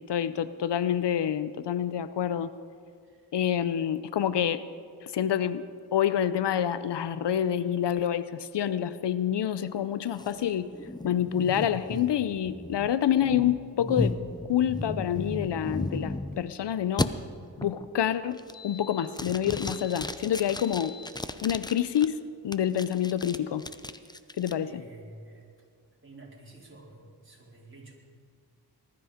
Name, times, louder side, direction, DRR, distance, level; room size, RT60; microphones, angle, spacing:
voice 1, 0.1-2.5 3.3-4.6 5.0-5.6 5.9-10.7 11.0-14.2 14.5-17.1 17.6-18.4 18.6-21.0 21.4-22.2 22.4-23.7 24.4-24.8, left 10 dB, 80° left, 14 dB, 0.7 m, -27 dB
sound 1, 10.2-16.5 17.0-17.1 17.6-17.9 18.3-18.8 19.1-22.1 22.5-24.5, left 2 dB, 10° left, 0.6 m, -35 dB
sound 2, 16.3-16.4 16.6-16.7 17.0-17.1 17.4-17.7 18.5-19.1 19.5-21.3, left 6 dB, 55° left, 2.1 m, -46 dB
voice 2, 24.6-25.5 26.0-27.9, right 2 dB, 30° right, -3 dB, 4.3 m, -50 dB
20.0 x 13.0 x 5.1 m, 2.2 s
cardioid pair, 70°, 41 cm